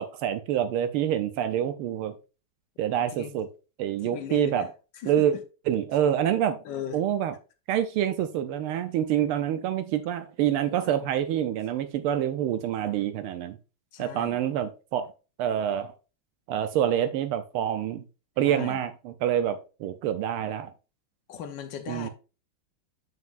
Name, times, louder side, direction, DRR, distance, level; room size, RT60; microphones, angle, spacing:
voice 1, 0.0-2.1 2.8-3.5 3.8-4.7 5.1-5.3 5.7-6.6 6.9-7.3 7.7-13.6 14.0-15.1 15.4-15.9 16.5-18.0 18.4-20.7 21.9-22.1, right 10 dB, 80° right, 1.5 m, -26 dB
voice 2, 4.0-5.4 6.6-7.0 10.7-10.9 13.9-14.4 18.4-18.8 21.3-22.1, left 8 dB, 65° left, 1.4 m, -38 dB
7.2 x 5.9 x 2.5 m
omnidirectional pair, 2.4 m